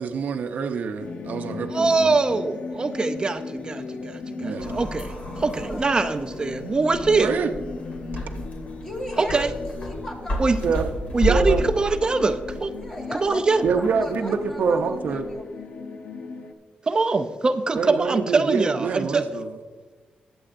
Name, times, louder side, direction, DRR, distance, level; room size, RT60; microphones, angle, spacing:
voice 1, 0.0-2.1 4.4-4.7 7.1-7.6 10.6-10.9 11.3-11.6 13.6-15.2 17.7-19.5, right 5 dB, 75° right, 5 dB, 0.7 m, -26 dB
sound 1, 1.0-16.5, left 4 dB, 65° left, 0.9 m, -37 dB
voice 2, 1.7-5.1 5.4-7.3 9.2-9.5 10.4-10.6 11.1-12.7 13.1-13.6 16.9-19.3, right 3 dB, 30° right, 9 dB, 0.5 m, -23 dB
sound 2, 4.6-15.3, equal, 50° left, 2.7 m, -33 dB
voice 3, 8.8-10.5 12.8-15.7, equal, 20° left, 0 dB, 2.0 m, -37 dB
20.0 x 7.8 x 2.6 m, 1.4 s
wide cardioid pair, 120°, 3 cm